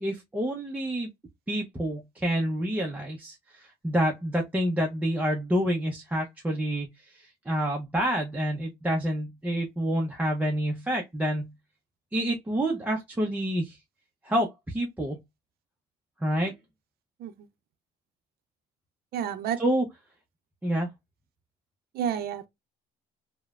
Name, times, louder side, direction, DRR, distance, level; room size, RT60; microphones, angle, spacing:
voice 1, 0.0-1.1 1.5-3.4 3.8-11.5 12.1-13.8 14.2-15.2 16.2-16.5 19.6-19.9 20.6-20.9, equal, 10° right, 0.5 m, -28 dB
voice 2, 19.1-19.6 21.9-22.5, right 9 dB, 65° right, 0.5 m, -30 dB
3.0 x 2.1 x 2.3 m
cardioid pair, 110°, 17 cm